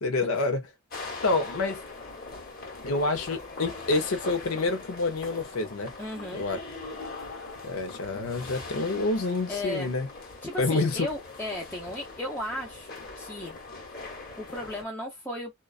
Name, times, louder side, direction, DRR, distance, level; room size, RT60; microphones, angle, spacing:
voice 1, 0.0-0.6 1.2-1.8 2.8-5.9 6.3-6.6 7.6-10.1 10.6-11.1, left 3 dB, 75° left, 0.6 m, -27 dB
sound 1, 0.9-14.8, left 3 dB, 45° left, 1.1 m, -41 dB
voice 2, 6.0-6.4 9.5-9.9 10.4-13.6 14.4-15.5, left 1 dB, 10° left, 0.6 m, -35 dB
2.4 x 2.2 x 2.3 m
head